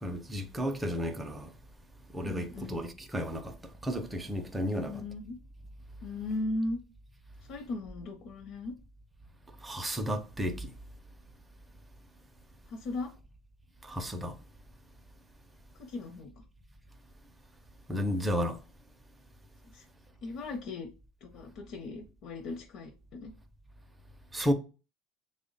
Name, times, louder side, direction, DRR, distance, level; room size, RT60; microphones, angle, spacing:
voice 1, 0.0-1.5 2.1-3.5 3.8-5.0 9.6-10.7 13.8-14.3 17.9-18.6 24.3-24.5, equal, 10° right, 0.4 m, -32 dB
voice 2, 2.2-2.8 4.6-5.4 6.0-6.8 7.5-8.7 12.7-13.1 15.8-16.4 19.6-19.8 20.2-20.9 21.2-23.3, left 2 dB, 55° left, 0.6 m, -37 dB
3.2 x 2.1 x 3.8 m
supercardioid pair, 135°, 0 cm